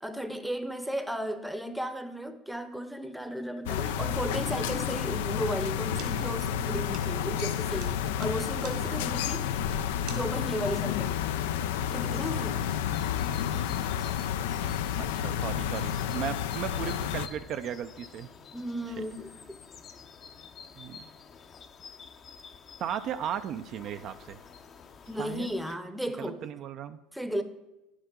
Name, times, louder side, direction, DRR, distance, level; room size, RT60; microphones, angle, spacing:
voice 1, 0.0-9.5 10.1-11.2 11.9-12.6 18.5-19.3 25.1-26.4 27.1-27.4, equal, ahead, 0.7 m, -34 dB
sound 1, 3.7-17.3, left 9 dB, 90° left, 0.4 m, -30 dB
sound 2, 6.0-10.8, right 7 dB, 70° right, 1.6 m, -49 dB
sound 3, 11.9-25.8, left 6 dB, 35° left, 0.7 m, -50 dB
voice 2, 15.0-18.3 20.8-21.1 22.8-24.4 25.2-25.5 26.2-27.0, right 9 dB, 50° right, 0.4 m, -36 dB
9.7 x 8.0 x 3.7 m
supercardioid pair, 110°, 0 cm